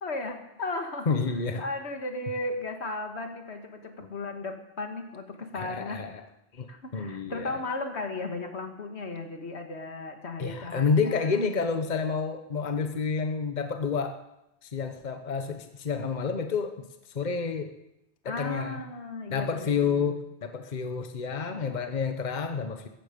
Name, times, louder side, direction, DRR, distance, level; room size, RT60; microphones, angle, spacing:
voice 1, 0.0-1.2 1.6-6.0 6.7-11.4 18.2-20.2, left 2 dB, 80° left, 5 dB, 2.0 m, -35 dB
voice 2, 1.1-1.6 4.0-4.1 5.5-6.2 6.5-6.7 6.9-7.5 10.4-14.2 14.7-16.7 17.1-17.7 18.2-18.8 19.3-22.9, left 5 dB, 45° left, 7 dB, 1.1 m, -29 dB
16.5 x 14.0 x 5.2 m, 0.87 s
omnidirectional pair, 1.1 m